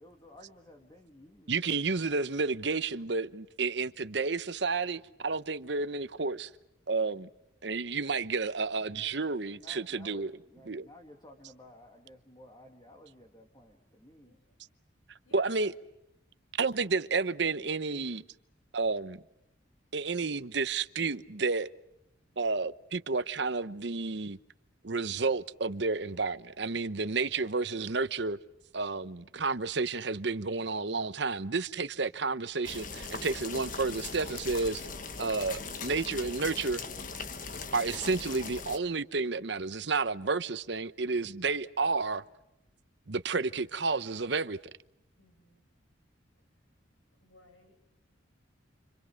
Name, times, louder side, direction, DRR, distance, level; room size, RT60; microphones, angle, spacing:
voice 1, 0.0-2.1 8.8-14.4, equal, 20° left, 2.5 m, -55 dB
voice 2, 1.5-6.5 6.9-7.3 7.6-10.3 10.7-10.9 15.3-15.7 16.6-18.2 18.7-19.2 19.9-21.7 22.4-24.4 24.8-28.4 28.7-34.8 35.2-36.8 37.7-42.2 43.1-44.6, right 4 dB, 60° right, 0.9 m, -31 dB
voice 3, 15.2-15.7 45.2-45.7 47.2-47.8, left 2 dB, 85° left, 6.2 m, -55 dB
sound 1, 32.6-38.8, left 4 dB, 40° left, 1.5 m, -40 dB
29.5 x 25.5 x 6.5 m
head